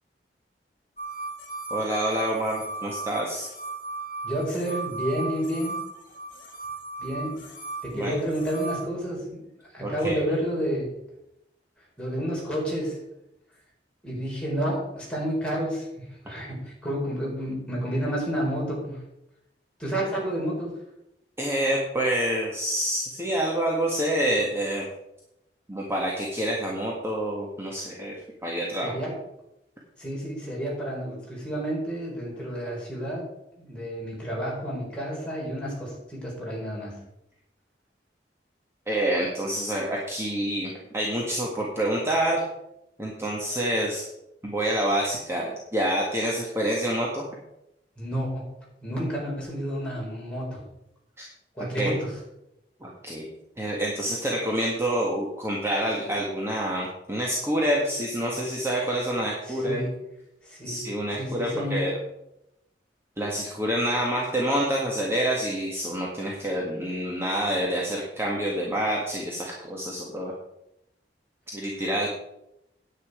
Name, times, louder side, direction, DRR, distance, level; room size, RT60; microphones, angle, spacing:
sound 1, 1.0-8.9, right 3 dB, 50° left, 2.0 m, -36 dB
voice 1, 1.7-3.5 7.9-8.1 9.8-10.2 21.4-24.8 25.7-28.1 28.4-29.2 38.9-42.4 43.0-44.1 44.4-47.2 51.2-51.3 51.8-52.0 52.8-53.3 53.6-59.8 60.7-61.9 63.2-70.3 71.5-72.1, right 1 dB, 15° right, -3 dB, 1.7 m, -27 dB
voice 2, 4.2-5.8 7.0-7.4 7.8-9.4 9.7-10.9 12.0-13.0 14.0-19.0 19.8-20.7 28.8-29.2 30.0-33.3 33.6-37.0 48.0-48.5 48.8-50.6 51.5-52.2 59.4-59.9 60.4-60.8 61.2-61.9, equal, 5° left, -5 dB, 4.7 m, -30 dB
9.9 x 9.4 x 5.1 m, 0.84 s
head